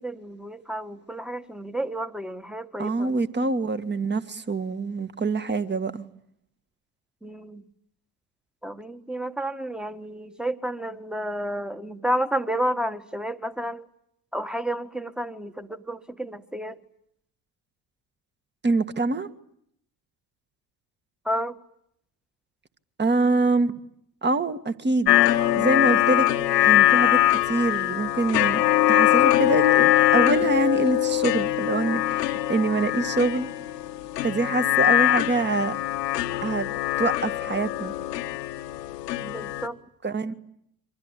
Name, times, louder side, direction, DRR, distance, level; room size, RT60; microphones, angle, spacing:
voice 1, 0.0-3.1 7.2-7.6 8.6-13.9 14.3-16.8 21.3-21.6 39.2-39.8, right 1 dB, ahead, 1.7 m, -31 dB
voice 2, 2.8-6.0 18.6-19.3 23.0-23.7 24.2-25.1 25.5-26.3 26.7-28.6 28.9-33.5 34.2-35.8 36.4-36.7 37.0-37.9 40.0-40.3, right 3 dB, 20° right, 2.0 m, -25 dB
sound 1, 25.1-39.7, left 14 dB, 75° left, 1.6 m, -22 dB
28.0 x 25.5 x 8.4 m
figure-of-eight pair, 55°, 49 cm